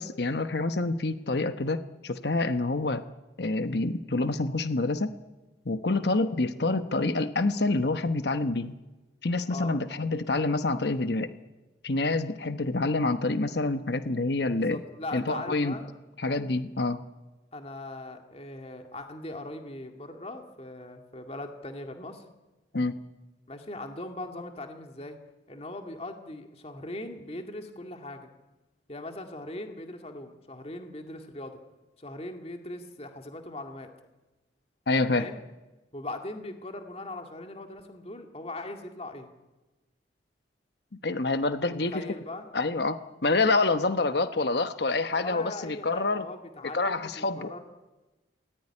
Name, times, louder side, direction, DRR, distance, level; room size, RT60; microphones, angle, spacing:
voice 1, 0.0-3.1 3.4-5.1 5.6-8.7 9.2-11.3 11.8-14.8 15.1-15.8 16.2-17.0 22.7-23.0 34.9-35.3 41.0-42.0 42.5-46.3 46.7-47.5, left 3 dB, 65° left, 10 dB, 1.0 m, -27 dB
voice 2, 14.6-15.9 17.5-22.2 23.5-25.2 25.5-28.3 28.9-31.6 32.0-33.9 35.1-35.4 35.9-39.3 41.6-42.5 45.2-47.6, left 2 dB, 35° left, 4 dB, 2.2 m, -40 dB
27.0 x 19.5 x 9.9 m, 1.1 s
head